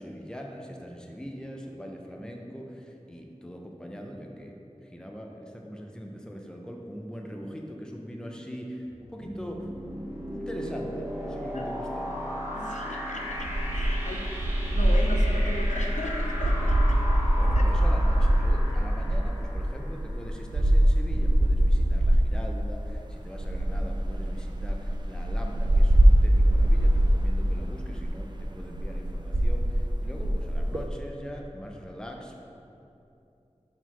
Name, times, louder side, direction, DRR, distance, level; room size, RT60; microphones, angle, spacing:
voice 1, 0.0-9.7 10.1-12.0 17.4-32.3, equal, 5° left, 1 dB, 0.6 m, -41 dB
sound 1, 8.9-20.6, equal, 20° right, 1.2 m, -37 dB
voice 2, 12.5-17.0 17.6-17.7 30.2-30.3, left 1 dB, 80° left, 1 dB, 0.6 m, -37 dB
sound 2, 13.3-22.4 23.3-30.8, right 1 dB, 35° right, 0.4 m, -23 dB
4.7 x 4.0 x 5.6 m, 2.7 s
wide cardioid pair, 50°, 12 cm